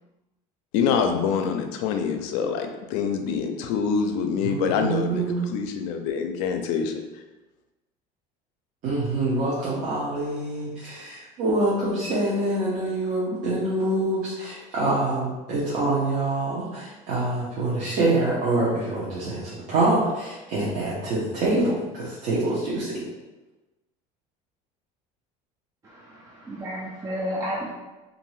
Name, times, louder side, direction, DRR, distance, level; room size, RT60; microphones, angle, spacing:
voice 1, 0.7-7.2, left 6 dB, 80° left, 5 dB, 0.4 m, -26 dB
voice 2, 4.4-5.5 8.8-23.0, right 2 dB, 50° right, -7 dB, 0.8 m, -25 dB
voice 3, 25.8-27.7, equal, 20° right, -4 dB, 0.4 m, -32 dB
2.6 x 2.6 x 3.1 m, 1.1 s
cardioid pair, 135°, 17 cm